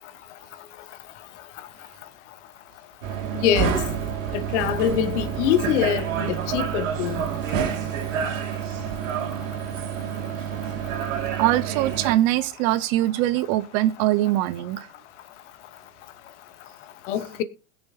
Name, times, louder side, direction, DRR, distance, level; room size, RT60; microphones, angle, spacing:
sound 1, 3.0-12.1, right 8 dB, 65° right, 2.7 m, -28 dB
voice 1, 3.3-3.8 4.3-7.2 17.1-17.4, left 10 dB, 55° left, 1.2 m, -24 dB
voice 2, 11.4-14.9, right 15 dB, 40° right, 0.7 m, -22 dB
21.0 x 7.0 x 2.5 m
hypercardioid pair, 115°, 42 cm